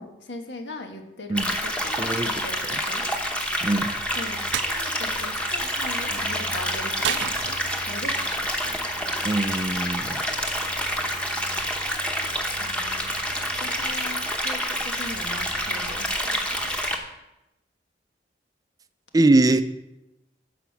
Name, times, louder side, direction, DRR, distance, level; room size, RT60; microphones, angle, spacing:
voice 1, 0.0-3.0 4.1-7.3 7.8-9.0 12.5-13.0 13.3-16.3 16.6-16.7, left 2 dB, 90° left, 5 dB, 1.3 m, -39 dB
sound 1, 1.3-17.0, equal, 5° left, 1.0 m, -28 dB
voice 2, 2.0-2.3 3.6-3.9 9.2-10.2 19.1-19.6, right 2 dB, 20° right, 11 dB, 0.4 m, -21 dB
sound 2, 4.5-4.8 7.0-8.0, right 10 dB, 90° right, 0.4 m, -30 dB
13.0 x 5.0 x 5.8 m, 0.93 s
head